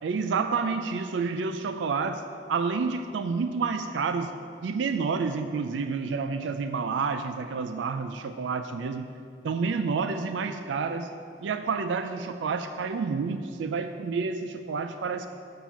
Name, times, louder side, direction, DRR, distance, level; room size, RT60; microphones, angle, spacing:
voice 1, 0.0-4.3 4.6-9.1 9.4-11.1 11.4-15.3, right 5 dB, 80° right, 8 dB, 0.4 m, -29 dB
7.3 x 6.9 x 6.1 m, 2.5 s
head